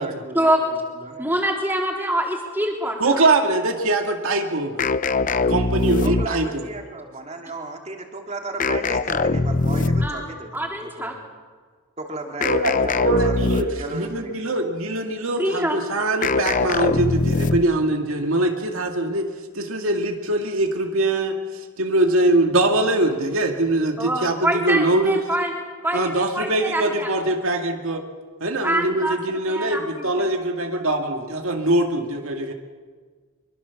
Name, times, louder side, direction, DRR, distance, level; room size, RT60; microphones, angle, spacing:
voice 1, 0.0-1.2 6.0-11.3 12.0-14.4 16.7-16.8, right 2 dB, 30° right, 3 dB, 2.6 m, -35 dB
voice 2, 1.2-3.2 10.0-10.3 10.5-11.2 15.3-15.8 24.0-25.5 25.8-27.1 28.6-29.2 29.5-30.3, right 1 dB, 10° right, 0 dB, 3.6 m, -25 dB
voice 3, 3.0-4.9 5.5-6.7 12.4-13.7 13.9-19.3 19.5-25.2 25.9-28.0 28.4-32.5, right 2 dB, 65° right, 3 dB, 2.2 m, -22 dB
sound 1, 4.8-6.6 8.6-10.3 12.4-13.9 16.2-17.8, left 3 dB, 35° left, 0.7 m, -22 dB
24.5 x 23.5 x 7.2 m, 1.5 s
head